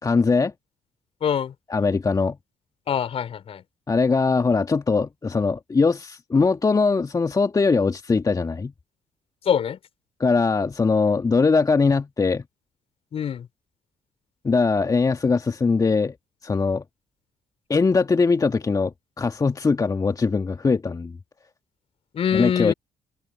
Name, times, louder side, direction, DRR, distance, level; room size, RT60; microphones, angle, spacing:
voice 1, 0.0-0.5 1.7-2.4 3.9-8.7 10.2-12.4 14.4-16.1 16.4-16.8 17.7-21.1 22.3-22.7, left 4 dB, 25° left, 1.7 m, -21 dB
voice 2, 1.2-1.5 2.9-3.6 9.4-9.8 13.1-13.5 22.1-22.7, left 8 dB, 50° left, 4.4 m, -24 dB
figure-of-eight pair, 45°, 13 cm